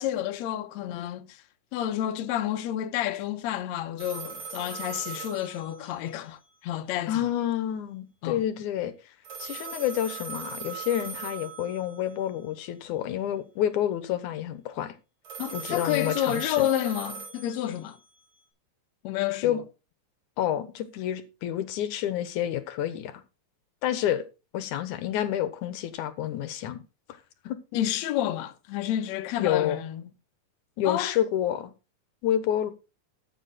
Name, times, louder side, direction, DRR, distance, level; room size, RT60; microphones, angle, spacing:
voice 1, 0.0-1.4 1.7-7.3 8.2-8.4 15.4-18.0 19.0-19.6 27.7-30.0 30.9-31.2, left 12 dB, 70° left, 2.1 m, -30 dB
sound 1, 4.0-6.3 9.2-12.1 15.2-18.2, right 6 dB, 60° right, 6.0 m, -39 dB
voice 2, 7.1-8.9 9.4-14.9 15.5-16.7 19.4-19.6 20.4-23.1 23.8-24.2 24.5-26.8 27.5-27.6 29.4-29.8 30.8-31.7 32.2-32.7, left 11 dB, 85° left, 2.6 m, -29 dB
13.5 x 7.4 x 4.1 m
omnidirectional pair, 3.4 m